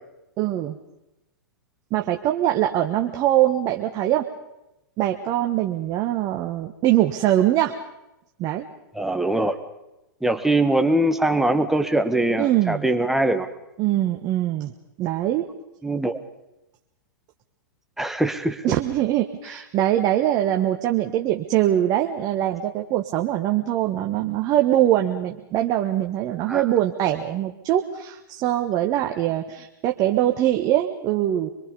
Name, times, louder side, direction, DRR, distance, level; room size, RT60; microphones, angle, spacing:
voice 1, 0.4-0.8 1.9-4.3 5.0-7.7 8.4-8.7 12.4-12.9 13.8-14.7 15.0-15.5 18.6-31.5, right 12 dB, 35° right, 4 dB, 1.3 m, -22 dB
voice 2, 8.9-9.6 10.2-13.5 15.8-16.2 18.0-18.6 26.5-26.6, right 1 dB, 5° right, 7 dB, 1.4 m, -22 dB
25.0 x 23.0 x 5.4 m, 0.92 s
hypercardioid pair, 120°, 11 cm